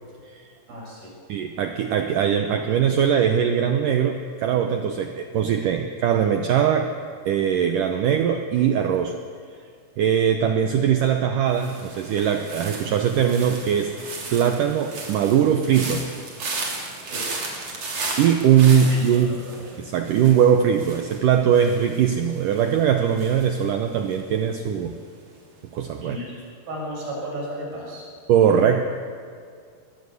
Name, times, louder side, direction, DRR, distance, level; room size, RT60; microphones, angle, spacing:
voice 1, 0.7-1.1 17.1-17.2 18.9-19.6 26.0-26.4 26.7-28.1, equal, 55° right, -3 dB, 8.8 m, -34 dB
voice 2, 1.3-6.9 7.3-9.2 10.0-13.9 14.3-16.1 18.2-19.4 19.8-25.0 25.7-26.2 28.3-28.8, right 8 dB, 80° right, 6 dB, 1.9 m, -20 dB
sound 1, 11.5-24.6 24.8-25.3, right 3 dB, 40° right, 3.8 m, -35 dB
22.5 x 19.0 x 8.3 m, 2.2 s
omnidirectional pair, 5.1 m